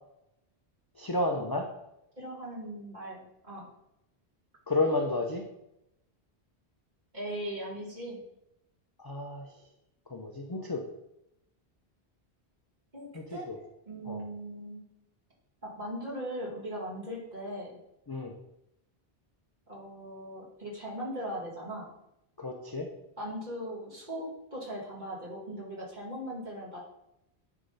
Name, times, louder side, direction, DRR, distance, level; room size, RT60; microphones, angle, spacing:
voice 1, 1.0-1.6 4.7-5.4 9.0-9.5 10.1-10.8 13.1-13.6 14.1-14.2 18.1-18.3 22.4-22.9, left 2 dB, 30° left, 2 dB, 0.5 m, -31 dB
voice 2, 2.2-3.7 7.1-8.2 12.9-13.5 13.9-14.8 15.6-17.8 19.7-21.9 23.2-26.8, equal, 45° right, -6 dB, 2.3 m, -39 dB
9.9 x 3.6 x 3.9 m, 0.84 s
omnidirectional pair, 1.1 m